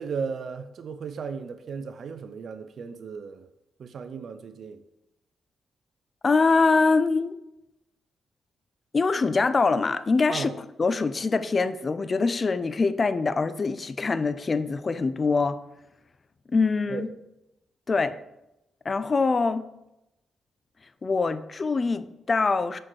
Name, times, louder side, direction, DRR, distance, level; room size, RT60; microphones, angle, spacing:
voice 1, 0.0-3.4 3.8-4.8 10.3-10.6 16.9-17.1 18.1-18.2, right 5 dB, 65° right, 9 dB, 0.4 m, -35 dB
voice 2, 6.2-7.4 8.9-15.6 16.5-17.1 17.9-18.1 18.9-19.6 21.0-22.8, left 4 dB, 40° left, 13 dB, 0.4 m, -24 dB
6.2 x 4.5 x 4.6 m, 0.89 s
cardioid pair, 70°, 0 cm